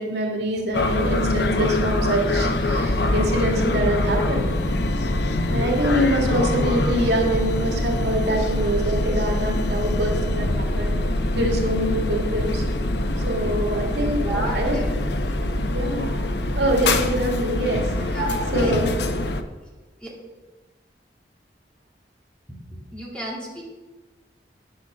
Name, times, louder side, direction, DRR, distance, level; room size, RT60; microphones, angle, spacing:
voice 1, 0.0-4.5 5.5-11.0 11.3-12.6 13.3-14.8 15.7-16.2 16.5-18.2 18.5-19.0, right 1 dB, 85° right, 1 dB, 2.3 m, -25 dB
sound 1, 0.7-19.4, left 1 dB, 75° left, 0.8 m, -24 dB
voice 2, 14.1-14.9 15.2-15.5 16.8-16.9 18.1-18.8 20.0-20.1 22.9-23.6, right 1 dB, 5° left, -4 dB, 2.5 m, -31 dB
10.0 x 8.0 x 6.4 m, 1.3 s
head